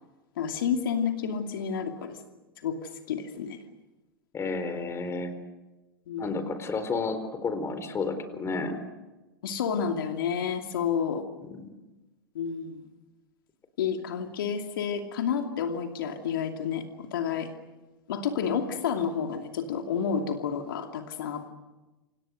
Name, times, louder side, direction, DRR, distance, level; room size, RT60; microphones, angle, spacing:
voice 1, 0.4-2.2 2.6-3.6 6.1-6.3 9.4-11.3 12.3-12.8 13.8-17.5 18.1-21.5, left 7 dB, 65° left, 4 dB, 2.7 m, -30 dB
voice 2, 4.3-5.3 6.2-8.8 11.4-11.7, left 4 dB, 20° left, 10 dB, 4.4 m, -31 dB
29.0 x 27.0 x 6.6 m, 1.1 s
hypercardioid pair, 100°, 12 cm